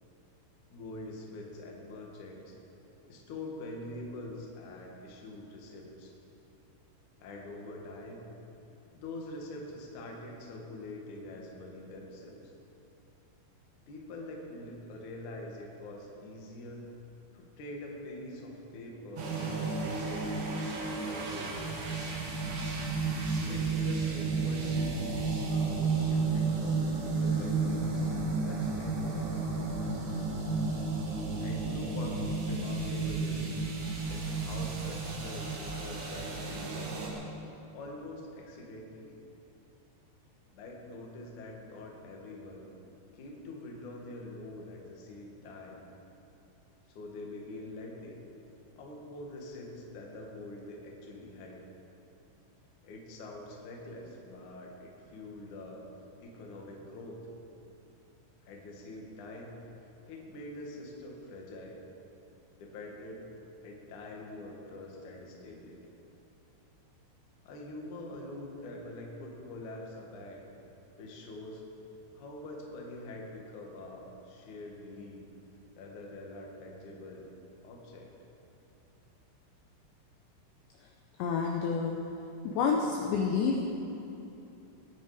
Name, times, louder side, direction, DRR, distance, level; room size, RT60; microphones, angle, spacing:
voice 1, 0.7-2.5 3.0-6.1 7.2-8.3 8.9-12.5 13.9-16.9 17.3-20.4 20.8-22.1 23.5-25.1 25.5-29.4 30.9-33.5 34.1-37.1 37.7-39.2 40.5-42.7 43.1-45.8 46.9-48.2 48.8-51.6 52.8-55.9 56.2-57.2 58.4-59.6 60.0-61.8 62.5-63.3 63.6-66.0 67.4-70.4 71.0-71.6 72.1-75.3 75.8-77.3 77.6-78.1, left 2 dB, 55° left, -1 dB, 2.5 m, -45 dB
sound 1, 19.2-37.1, right 3 dB, 60° right, 3.4 m, -32 dB
voice 2, 81.2-82.0 82.4-83.7, left 5 dB, 75° left, 1 dB, 2.8 m, -28 dB
20.0 x 9.2 x 5.0 m, 2.8 s
omnidirectional pair, 5.9 m